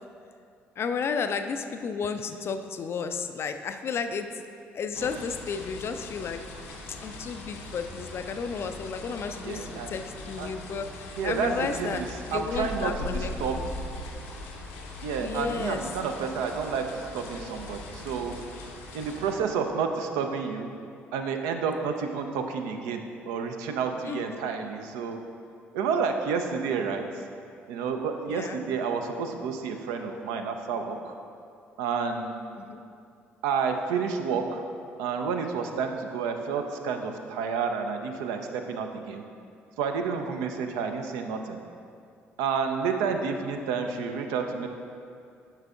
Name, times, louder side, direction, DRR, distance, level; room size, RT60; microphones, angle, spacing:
voice 1, 0.8-4.4 4.7-6.5 7.0-12.0 12.3-13.7 15.2-15.8 24.0-24.2 27.1-27.2 28.3-28.6 32.5-32.8, left 5 dB, 40° left, 8 dB, 0.3 m, -33 dB
sound 1, 4.9-19.3, left 2 dB, 70° left, 0.7 m, -40 dB
voice 2, 9.4-10.0 10.4-10.5 11.2-13.6 15.0-18.4 18.9-20.7 21.1-25.2 25.7-27.3 27.7-31.2 31.8-32.4 33.4-34.6 35.0-39.2 39.8-41.6 42.4-44.7, right 5 dB, 65° right, 5 dB, 0.4 m, -30 dB
8.9 x 5.6 x 2.4 m, 2.4 s
figure-of-eight pair, 50°, 6 cm